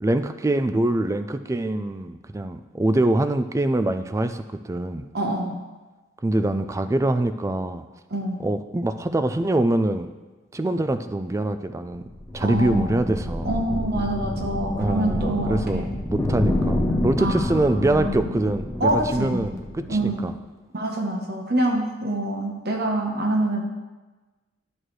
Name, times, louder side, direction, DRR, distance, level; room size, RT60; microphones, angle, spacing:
voice 1, 0.0-5.1 6.2-7.8 8.4-10.1 10.5-12.0 12.3-13.6 14.8-20.3, right 1 dB, 15° right, 10 dB, 0.3 m, -24 dB
voice 2, 5.1-5.6 8.1-8.4 12.4-13.1 13.4-15.9 17.2-18.1 18.8-19.4 19.9-20.2 20.7-23.6, right 1 dB, 55° right, 2 dB, 1.0 m, -26 dB
sound 1, 11.9-20.4, left 1 dB, 15° left, 0.9 m, -28 dB
11.0 x 6.3 x 3.2 m, 1.2 s
head